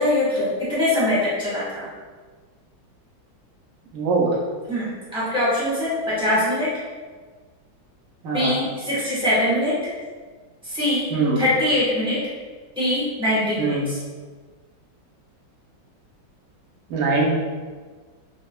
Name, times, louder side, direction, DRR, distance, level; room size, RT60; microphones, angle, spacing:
voice 1, 0.0-1.9 4.7-6.7 8.3-9.9 10.6-11.1 11.4-12.2 12.8-14.0, left 1 dB, 5° right, -9 dB, 0.9 m, -22 dB
voice 2, 3.9-4.3 8.2-8.5 11.1-11.4 13.6-13.9 16.9-17.3, right 3 dB, 60° right, -3 dB, 0.9 m, -22 dB
5.0 x 2.3 x 2.3 m, 1.4 s
omnidirectional pair, 2.1 m